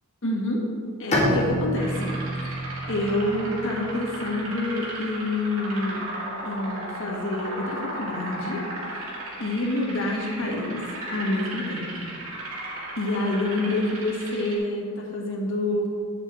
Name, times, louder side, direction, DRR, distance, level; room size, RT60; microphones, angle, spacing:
voice 1, 0.2-0.6 1.0-2.2 2.9-6.1 6.4-8.6 9.4-10.8 11.1-12.1 13.0-15.9, left 2 dB, 65° left, -1 dB, 1.4 m, -27 dB
Bowed string instrument, 1.1-4.7, equal, 30° left, 1.6 m, -28 dB
sound 1, 1.7-14.6, right 1 dB, 75° right, 2.1 m, -36 dB
8.1 x 6.7 x 3.7 m, 2.3 s
head